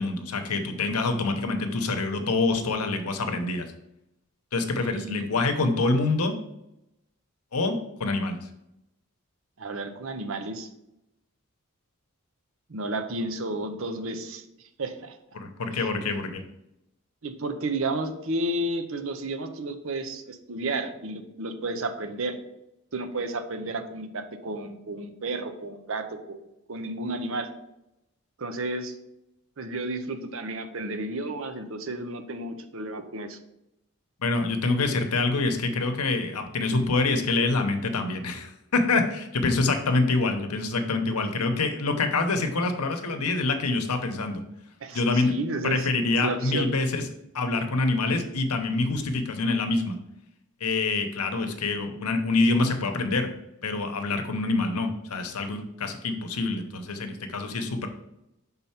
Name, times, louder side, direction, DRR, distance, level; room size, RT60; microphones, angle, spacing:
voice 1, 0.0-3.7 4.5-6.3 7.5-8.4 15.4-16.4 34.2-44.4 44.9-45.3 45.6-47.0 47.3-50.0 50.6-53.3 53.6-57.9, left 3 dB, 85° left, 6 dB, 0.9 m, -26 dB
voice 2, 4.8-5.4 9.6-10.7 12.7-14.4 14.8-15.2 15.7-15.8 17.2-22.4 22.9-26.4 26.7-27.5 28.4-28.9 29.6-33.4 44.8-46.7, right 2 dB, 60° right, 7 dB, 0.7 m, -32 dB
5.5 x 4.0 x 5.8 m, 0.86 s
head